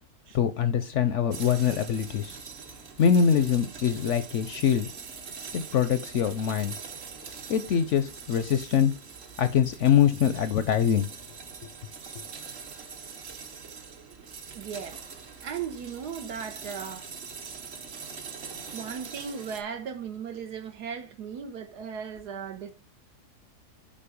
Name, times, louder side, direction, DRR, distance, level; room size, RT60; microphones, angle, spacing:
voice 1, 0.3-2.4 3.0-4.9 5.5-6.8 7.5-8.9 9.4-11.1, left 8 dB, 65° left, 0.7 m, -23 dB
sound 1, 1.3-19.6, right 6 dB, 50° right, 1.0 m, -43 dB
voice 2, 14.5-15.0 15.4-17.1 18.7-22.7, right 7 dB, 85° right, 1.6 m, -37 dB
7.5 x 4.3 x 5.1 m
omnidirectional pair, 1.7 m